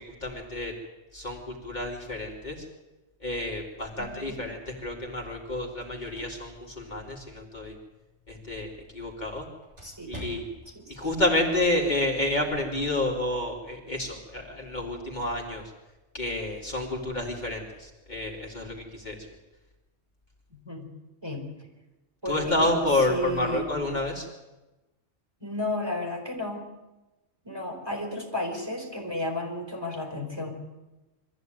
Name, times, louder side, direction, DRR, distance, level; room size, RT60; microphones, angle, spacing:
voice 1, 0.2-0.7 1.1-2.6 3.2-7.8 8.3-9.5 10.1-10.5 10.9-15.6 16.1-19.2 22.2-24.2, left 2 dB, 35° left, -1 dB, 3.0 m, -29 dB
voice 2, 4.0-4.4 9.8-10.4 10.7-11.1 20.6-20.9 21.2-21.5 22.2-22.7 23.0-23.7 25.4-26.7 27.4-30.5, left 1 dB, 20° right, 0 dB, 4.5 m, -33 dB
sound 1, 5.6-10.8, right 1 dB, 65° right, 7.4 m, -49 dB
23.0 x 14.5 x 9.3 m, 1.1 s
omnidirectional pair, 1.3 m